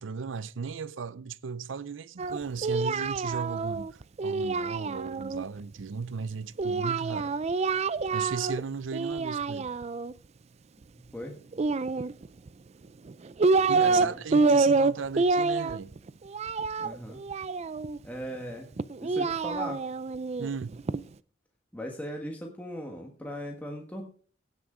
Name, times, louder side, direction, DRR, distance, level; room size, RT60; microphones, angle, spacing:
voice 1, 0.0-7.4 8.1-9.7 13.7-15.9 20.4-20.8, right 5 dB, 80° right, 0.6 m, -36 dB
Singing, 2.2-5.4 6.6-8.6 8.9-10.1 11.5-12.5 13.1-14.1 14.3-18.0 18.8-21.0, right 4 dB, 35° right, 0.4 m, -27 dB
voice 2, 13.7-14.2 16.8-17.2 18.0-19.9 21.7-24.0, equal, 10° left, 1.4 m, -39 dB
17.0 x 6.3 x 5.0 m
head